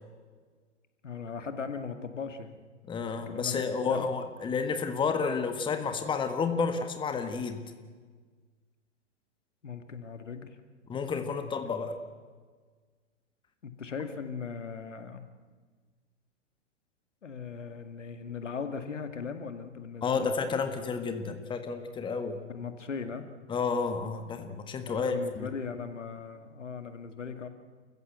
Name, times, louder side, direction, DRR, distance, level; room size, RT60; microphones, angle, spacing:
voice 1, 1.0-2.6 3.0-3.6 3.9-4.1 9.6-10.6 11.3-11.5 13.6-15.2 17.2-20.3 22.5-23.3 24.9-27.5, left 6 dB, 75° left, 8 dB, 2.2 m, -38 dB
voice 2, 2.9-7.6 10.9-12.0 20.0-22.4 23.5-25.5, left 5 dB, 15° left, 7 dB, 1.6 m, -31 dB
29.5 x 15.0 x 8.0 m, 1.5 s
figure-of-eight pair, 115°, 37 cm